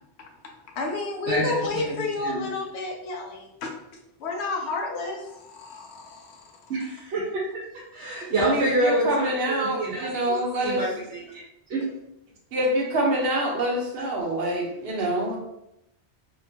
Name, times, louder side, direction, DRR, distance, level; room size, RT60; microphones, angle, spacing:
voice 1, 0.8-3.7 4.2-6.7, left 3 dB, 80° left, 2 dB, 0.9 m, -31 dB
voice 2, 1.3-2.4 6.7-7.6 7.9-11.4 11.7-11.8, right 1 dB, 90° right, -5 dB, 1.0 m, -27 dB
voice 3, 8.4-10.8 12.5-15.4, right 1 dB, 65° right, -1 dB, 0.9 m, -26 dB
2.8 x 2.2 x 2.6 m, 0.82 s
omnidirectional pair, 1.1 m